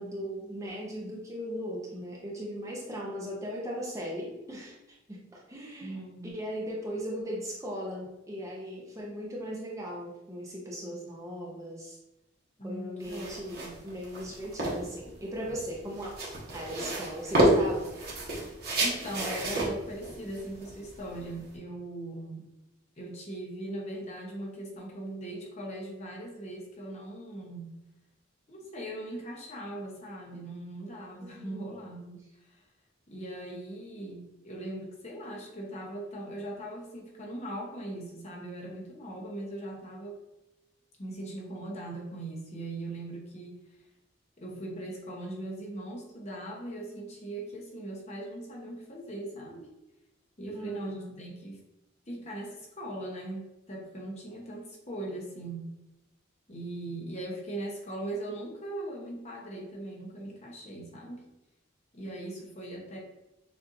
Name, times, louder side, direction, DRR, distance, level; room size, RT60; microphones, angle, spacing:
voice 1, 0.0-4.8 5.1-12.0 12.6-16.1 16.5-18.0 31.2-31.7 50.5-51.1, equal, 15° right, -3 dB, 0.6 m, -38 dB
voice 2, 5.8-6.4 12.6-13.4 13.6-13.8 18.8-22.5 23.0-27.7 28.5-32.6 33.1-40.2 41.0-43.6 44.4-49.7 50.4-51.6 52.1-55.7 56.5-61.2 61.9-63.0, right 1 dB, 35° left, -2 dB, 0.9 m, -40 dB
sound 1, 13.0-21.5, right 1 dB, 50° right, 1.1 m, -30 dB
6.7 x 2.6 x 2.6 m, 0.95 s
head